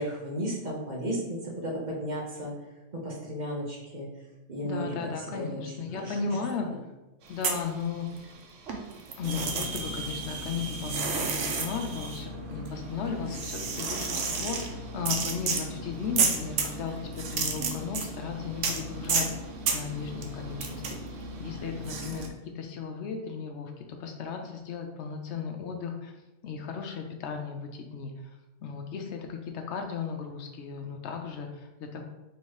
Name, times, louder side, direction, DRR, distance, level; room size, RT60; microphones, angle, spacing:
voice 1, 0.0-2.5 2.9-4.1 4.5-6.2 6.6-6.8, equal, 45° right, -4 dB, 0.9 m, -34 dB
voice 2, 4.6-6.7 7.3-8.1 9.2-14.6 14.9-19.3 19.7-21.0 21.4-22.3 22.5-26.1 26.4-28.1 28.6-32.0, left 6 dB, 75° left, 3 dB, 0.8 m, -35 dB
sound 1, 7.3-8.4 8.7-22.3, right 4 dB, 90° right, 1.0 m, -32 dB
3.2 x 2.8 x 4.6 m, 1.0 s
omnidirectional pair, 1.2 m